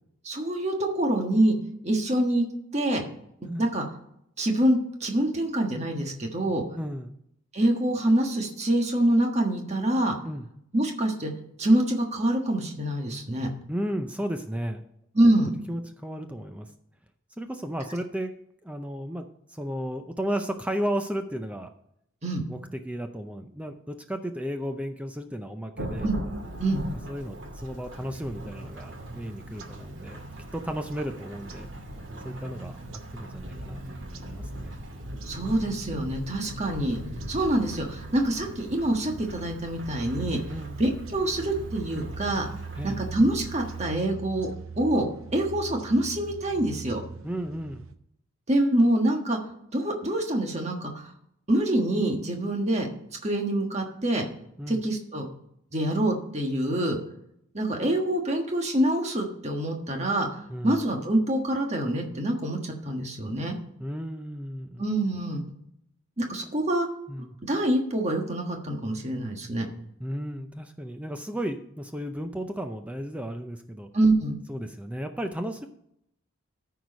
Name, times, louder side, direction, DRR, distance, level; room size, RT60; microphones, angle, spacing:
voice 1, 0.2-1.6 1.8-2.4 2.7-3.0 3.4-3.8 4.4-6.6 7.5-10.1 10.7-11.3 11.6-13.5 15.1-15.5 22.2-22.4 26.0-26.1 26.6-26.8 35.2-37.0 37.3-40.4 40.8-42.5 42.8-44.5 44.8-47.0 48.5-49.4 49.7-51.1 51.5-52.9 53.2-54.2 54.7-55.3 55.7-57.0 57.5-60.3 60.6-63.5 64.8-65.4 66.2-66.9 67.5-69.7 73.9-74.4, right 1 dB, 30° right, 2 dB, 1.5 m, -25 dB
voice 2, 6.7-7.2 10.3-10.4 13.7-14.8 15.7-16.7 17.4-18.3 18.6-21.7 22.5-26.1 27.1-30.2 30.5-31.7 32.2-32.8 33.1-34.7 40.5-40.8 42.8-43.0 47.2-47.9 54.6-54.8 60.5-60.8 63.8-64.9 67.1-67.4 70.0-73.9 74.5-75.7, equal, 5° right, 6 dB, 0.5 m, -34 dB
Thunderstorm / Rain, 25.8-43.8, equal, 60° right, 2.3 m, -41 dB
sound 1, 28.0-47.9, right 4 dB, 80° right, 0.7 m, -42 dB
13.5 x 4.7 x 5.2 m, 0.74 s
head